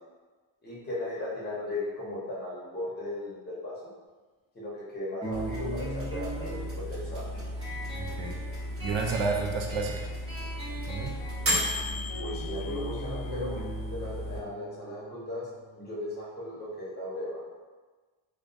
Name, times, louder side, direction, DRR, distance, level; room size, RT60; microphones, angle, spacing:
voice 1, 0.6-3.8 4.5-7.3 12.2-13.6 13.9-15.5 15.7-17.4, left 1 dB, 25° left, -7 dB, 0.6 m, -37 dB
sound 1, 5.2-16.3, right 1 dB, 15° right, 0.3 m, -41 dB
sound 2, 5.3-14.4, left 1 dB, 30° right, 0.9 m, -34 dB
voice 2, 7.9-8.4 8.8-10.1 10.9-11.1, right 4 dB, 70° right, 1 dB, 0.5 m, -31 dB
2.3 x 2.1 x 2.5 m, 1.3 s
cardioid pair, 150°, 45 cm